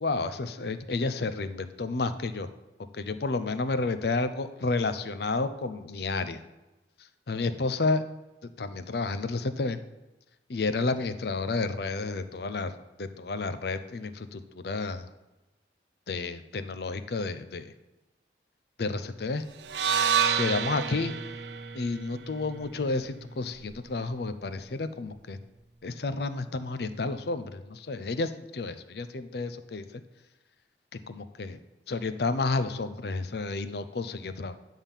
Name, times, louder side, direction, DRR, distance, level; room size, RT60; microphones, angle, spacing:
voice 1, 0.0-2.5 2.9-6.4 7.3-8.0 8.6-9.8 10.5-12.7 13.0-15.1 16.1-17.7 18.8-19.4 20.4-21.1 21.7-25.4 25.8-29.8 31.1-31.6 31.9-34.6, left 3 dB, 60° left, 12 dB, 0.6 m, -31 dB
sound 1, 19.6-23.8, right 8 dB, 75° right, 0.6 m, -30 dB
9.9 x 3.7 x 7.2 m, 1.0 s
head